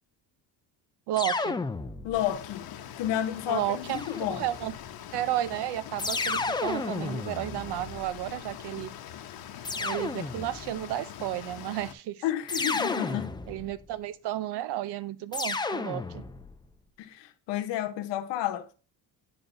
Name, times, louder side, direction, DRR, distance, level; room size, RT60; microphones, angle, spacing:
voice 1, 1.1-1.6 3.5-4.0 4.3-4.7 5.1-8.9 9.8-12.2 13.5-16.2, right 13 dB, 70° right, 0.7 m, -32 dB
sound 1, 1.2-2.4 3.9-4.7 6.0-8.3 9.6-10.8 12.5-13.8 15.3-16.5, left 3 dB, 10° left, 0.4 m, -32 dB
voice 2, 2.0-2.7 3.0-4.4 12.2-13.4 17.0-18.7, left 12 dB, 85° left, 1.0 m, -31 dB
sound 2, 2.1-11.9, left 10 dB, 60° left, 0.9 m, -43 dB
10.5 x 4.0 x 2.6 m
cardioid pair, 105°, 42 cm